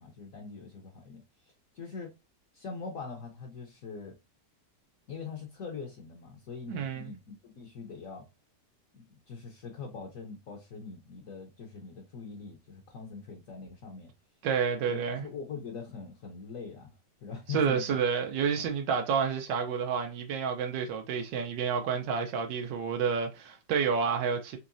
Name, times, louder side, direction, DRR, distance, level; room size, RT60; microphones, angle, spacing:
voice 1, 0.0-2.1 2.5-4.2 5.1-8.2 8.9-14.1 14.9-18.0 18.6-18.7, left 5 dB, 60° left, 1.1 m, -43 dB
voice 2, 6.7-7.1 14.4-15.2 17.5-24.6, right 6 dB, 90° right, 1.3 m, -29 dB
4.6 x 3.0 x 2.5 m
omnidirectional pair, 1.9 m